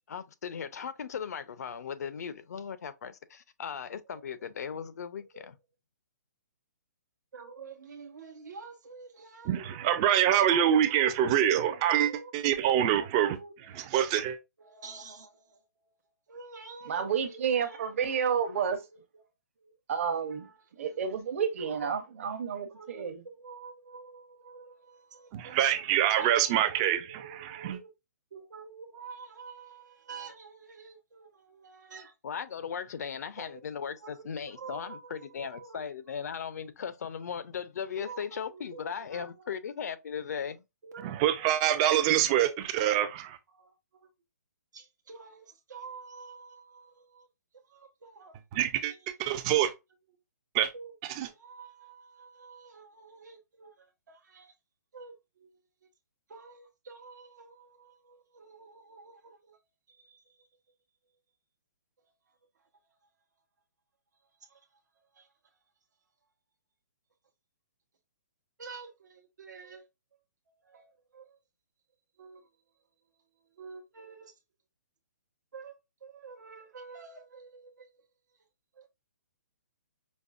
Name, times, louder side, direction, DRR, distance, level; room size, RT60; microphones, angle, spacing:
voice 1, 0.1-5.6 32.2-40.6, left 7 dB, 65° left, 0.5 m, -37 dB
voice 2, 5.1-5.5 7.3-12.3 12.8-14.1 14.6-15.6 16.3-19.2 19.6-19.7 20.3-20.6 21.6-21.7 22.7-27.9 28.3-32.1 33.4-33.6 34.0-35.8 38.0-39.5 40.8-42.9 43.5-44.1 44.7-47.3 47.7-48.4 48.8-49.0 50.7-54.5 54.9-55.5 56.3-59.6 59.9-60.5 64.4-64.6 65.1-65.3 68.6-69.9 70.5-71.4 72.2-72.5 73.6-74.3 75.5-78.0 78.7-78.9, right 4 dB, 80° right, 0.8 m, -49 dB
voice 3, 9.5-13.4 13.9-14.4 25.3-27.8 41.0-43.3 48.5-48.9 49.2-49.7 50.5-50.7 51.2-51.3, right 11 dB, 20° right, 0.3 m, -25 dB
voice 4, 16.9-18.8 19.9-20.5 20.8-23.2, right 7 dB, 50° right, 0.8 m, -30 dB
5.2 x 2.0 x 2.4 m
hypercardioid pair, 160°, 10 cm